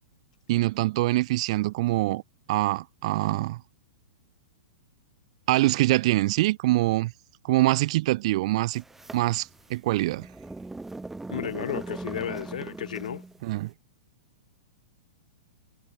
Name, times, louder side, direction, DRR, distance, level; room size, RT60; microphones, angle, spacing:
voice 1, 0.5-2.2 2.5-3.6 5.5-7.1 7.4-8.8 9.1-10.3 13.4-13.7, right 18 dB, 50° right, 0.5 m, -24 dB
sound 1, 8.7-13.4, right 2 dB, 5° right, 1.2 m, -39 dB
voice 2, 11.3-13.2, left 9 dB, 65° left, 1.8 m, -33 dB
figure-of-eight pair, 105°, 5 cm